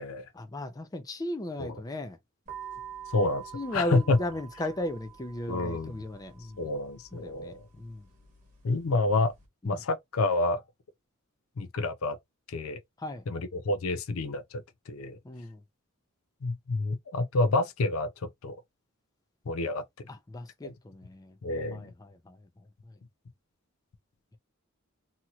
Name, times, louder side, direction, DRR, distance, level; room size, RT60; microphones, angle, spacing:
voice 1, 0.3-2.2 3.5-6.7 7.1-8.0 9.6-9.8 13.0-13.2 15.2-15.6 20.1-21.3 21.7-22.4, left 1 dB, 20° left, 0.4 m, -36 dB
sound 1, 2.5-9.5, right 8 dB, 35° right, 1.2 m, -48 dB
voice 2, 3.1-3.4 3.7-4.2 5.5-6.0 6.6-7.6 8.6-9.3 9.6-10.6 11.6-12.2 12.5-12.8 13.3-15.2 16.4-18.1 18.4-18.6 19.5-20.1 20.6-20.7 21.4-21.9, left 2 dB, 80° left, 0.5 m, -28 dB
2.8 x 2.8 x 2.3 m
head